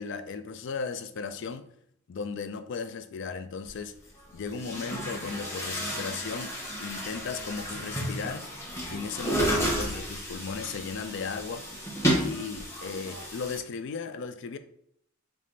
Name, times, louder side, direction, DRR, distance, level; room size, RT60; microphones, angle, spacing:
voice 1, 0.0-1.7 2.1-3.9 4.3-6.5 6.8-8.5 8.9-11.7 12.2-14.6, left 5 dB, 60° left, 0.4 m, -36 dB
Chatter / Gurgling / Tap, 3.7-3.8 4.5-13.6, equal, 15° left, 1.0 m, -32 dB
3.4 x 3.2 x 3.9 m
head